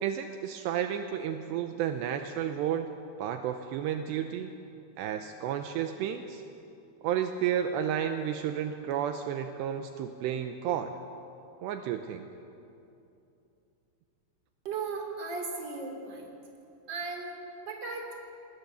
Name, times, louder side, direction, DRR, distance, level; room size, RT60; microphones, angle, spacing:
voice 1, 0.0-2.9 3.2-4.5 5.0-6.4 7.0-10.9 11.6-12.3, right 9 dB, 85° right, 6 dB, 2.5 m, -32 dB
voice 2, 14.6-16.3 16.9-18.1, right 4 dB, 25° right, 2 dB, 3.3 m, -36 dB
26.0 x 20.0 x 7.0 m, 2.7 s
omnidirectional pair, 5.9 m